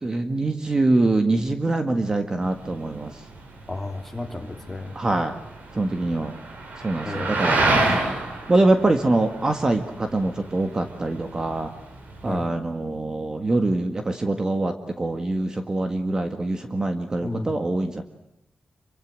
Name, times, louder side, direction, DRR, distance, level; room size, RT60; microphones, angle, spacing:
voice 1, 0.0-3.1 4.9-5.4 5.7-6.3 6.8-8.0 8.5-11.7 12.2-18.0, right 2 dB, 25° right, 6 dB, 1.7 m, -24 dB
sound 1, 2.4-12.3, right 2 dB, 85° right, 6.3 m, -29 dB
voice 2, 3.7-4.9 7.0-7.4 12.3-12.5 17.2-17.5, left 2 dB, 10° left, 3 dB, 3.2 m, -33 dB
27.0 x 25.0 x 7.6 m, 0.84 s
wide cardioid pair, 165°, 3 cm